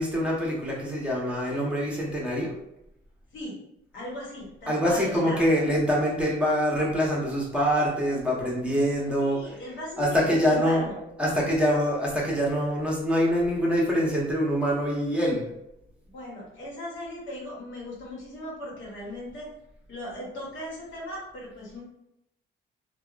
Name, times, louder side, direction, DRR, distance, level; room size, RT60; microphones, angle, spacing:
voice 1, 0.0-2.5 4.7-10.8 11.2-15.5, equal, 5° right, -4 dB, 0.8 m, -25 dB
voice 2, 3.9-5.4 9.2-11.1 16.1-19.5 19.9-21.8, left 1 dB, 75° left, -4 dB, 1.1 m, -38 dB
2.7 x 2.3 x 2.4 m, 0.82 s
cardioid pair, 90°, 20 cm